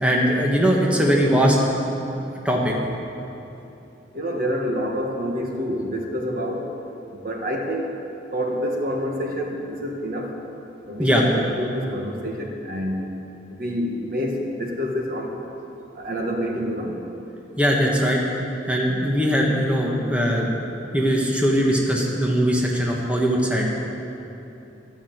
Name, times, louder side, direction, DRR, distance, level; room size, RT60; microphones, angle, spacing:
voice 1, 0.0-1.6 2.4-2.7 11.0-11.2 17.6-18.2 18.7-20.6 20.9-23.7, equal, 5° right, -2 dB, 1.6 m, -20 dB
voice 2, 4.1-6.7 7.1-7.9 8.3-10.3 10.8-13.0 13.5-15.3 15.9-17.0, equal, 50° right, 1 dB, 1.7 m, -27 dB
13.0 x 12.0 x 8.0 m, 2.9 s
head